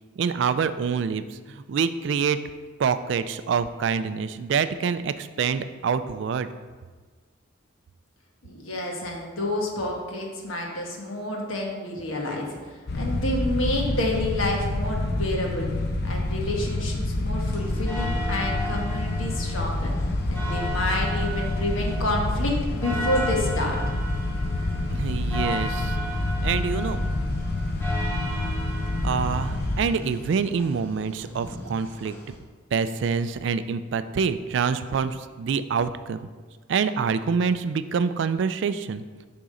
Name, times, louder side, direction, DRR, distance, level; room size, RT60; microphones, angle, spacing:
voice 1, 0.2-2.4 2.8-6.5 24.9-26.0 26.4-27.0 29.0-32.1 32.7-36.2 36.7-39.0, right 6 dB, 60° right, 12 dB, 0.3 m, -26 dB
voice 2, 8.4-12.5 12.9-15.7 16.0-19.9 20.3-23.9, left 1 dB, 85° left, -1 dB, 1.3 m, -29 dB
sound 1, 12.9-29.8, left 2 dB, 50° left, 0.5 m, -27 dB
sound 2, 17.5-32.4, equal, 10° left, 1.1 m, -36 dB
7.0 x 3.7 x 5.1 m, 1.4 s
head